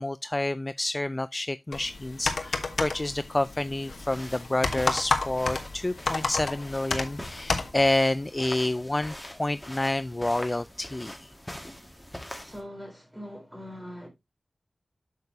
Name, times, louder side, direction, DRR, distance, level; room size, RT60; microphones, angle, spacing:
voice 1, 0.0-11.3, left 1 dB, 30° left, 0.3 m, -29 dB
sound 1, 1.7-7.7, left 3 dB, 75° left, 1.1 m, -31 dB
sound 2, 3.8-12.6, left 1 dB, 10° left, 1.8 m, -43 dB
voice 2, 12.4-14.1, equal, 10° right, 3.8 m, -42 dB
8.0 x 6.7 x 2.7 m
wide cardioid pair, 60°, 0 cm